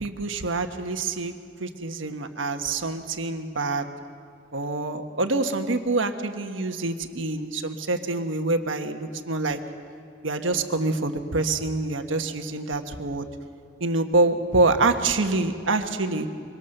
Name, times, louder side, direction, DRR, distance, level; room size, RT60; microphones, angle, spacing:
voice 1, 0.0-1.3 1.6-3.9 4.5-9.6 10.2-13.3 13.8-16.3, right 3 dB, 70° right, 6 dB, 1.4 m, -26 dB
24.0 x 24.0 x 6.7 m, 2.5 s
head